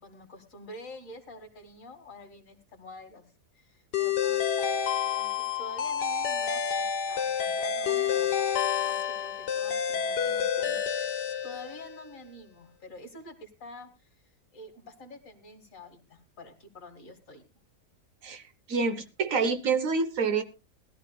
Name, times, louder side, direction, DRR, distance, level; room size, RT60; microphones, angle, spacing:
voice 1, 0.0-3.2 3.5-11.1 11.4-14.1 14.5-17.4, left 2 dB, 50° left, 6 dB, 2.4 m, -48 dB
sound 1, 3.9-12.1, left 8 dB, 75° left, 1.7 m, -29 dB
voice 2, 18.7-20.4, right 4 dB, 55° right, 10 dB, 1.4 m, -27 dB
20.0 x 13.0 x 2.3 m, 0.27 s
omnidirectional pair, 1.8 m